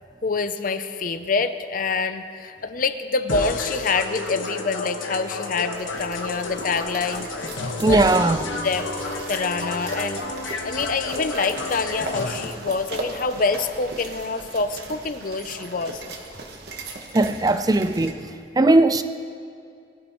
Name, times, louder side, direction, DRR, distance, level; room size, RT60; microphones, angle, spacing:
voice 1, 0.2-8.0 8.6-8.9 9.3-10.2 10.6-16.0, left 4 dB, 45° left, 0.5 m, -26 dB
sound 1, 3.3-12.4, left 2 dB, 80° left, 1.4 m, -31 dB
sound 2, 5.7-18.1, right 2 dB, 55° right, 1.3 m, -38 dB
voice 2, 7.8-8.4 17.1-18.2 18.6-19.0, right 2 dB, 20° right, 0.4 m, -18 dB
21.5 x 12.5 x 3.1 m
head